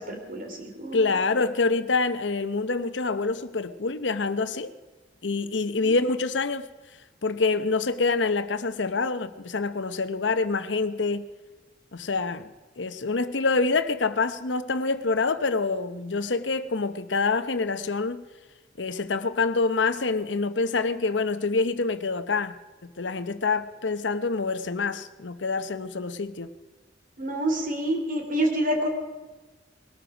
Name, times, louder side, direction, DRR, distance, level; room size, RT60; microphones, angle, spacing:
voice 1, 0.0-1.1 5.8-5.9 27.2-28.9, right 1 dB, 50° right, 3 dB, 3.2 m, -28 dB
voice 2, 0.9-4.7 5.2-6.6 7.2-11.3 11.9-18.2 18.8-22.5 23.0-26.5, left 4 dB, 80° left, 11 dB, 0.9 m, -26 dB
21.0 x 13.0 x 5.0 m, 1.2 s
head